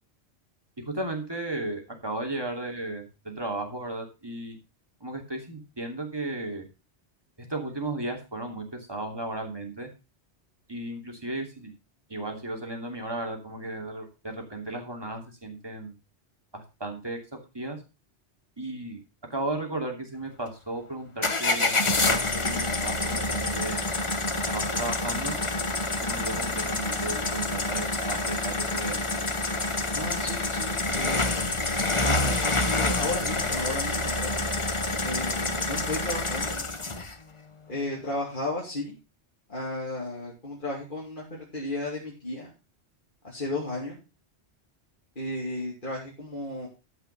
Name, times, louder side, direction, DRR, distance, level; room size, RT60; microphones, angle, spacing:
voice 1, 0.9-4.6 5.0-6.7 7.5-9.9 10.7-11.7 12.1-15.9 16.5-17.8 18.6-19.0 19.3-23.9 24.5-25.4 26.0-29.0, right 2 dB, 20° right, 3 dB, 2.8 m, -35 dB
sound 1, 21.2-37.1, left 2 dB, 30° left, 1.1 m, -27 dB
voice 2, 29.9-31.5 32.1-34.3 35.0-36.6 37.7-38.9 39.5-42.5 43.2-44.0 45.1-46.7, left 2 dB, 45° left, -4 dB, 3.3 m, -34 dB
14.0 x 5.7 x 5.6 m, 0.30 s
omnidirectional pair, 1.1 m